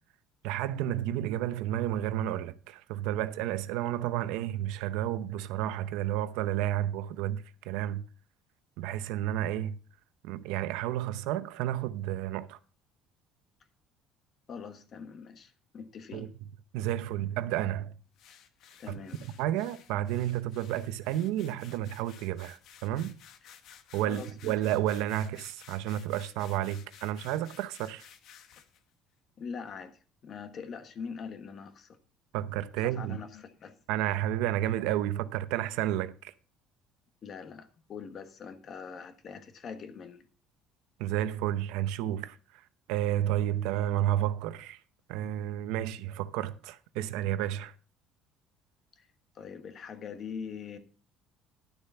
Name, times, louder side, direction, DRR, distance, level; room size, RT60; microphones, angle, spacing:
voice 1, 0.4-8.0 8.8-9.8 10.2-12.6 16.1-16.3 16.7-17.9 19.2-23.1 23.9-28.0 32.3-33.2 33.9-36.3 41.0-42.4 42.9-44.8 45.1-47.7, right 12 dB, 85° right, 0.7 m, -31 dB
voice 2, 14.5-16.3 18.8-19.2 24.1-24.5 29.4-32.0 32.8-33.7 37.2-40.2 49.0-49.1 49.3-50.8, left 6 dB, 35° left, 1.3 m, -43 dB
sound 1, 18.2-28.8, left 9 dB, 55° left, 1.2 m, -55 dB
12.0 x 6.9 x 5.5 m
cardioid pair, 165°, 0 cm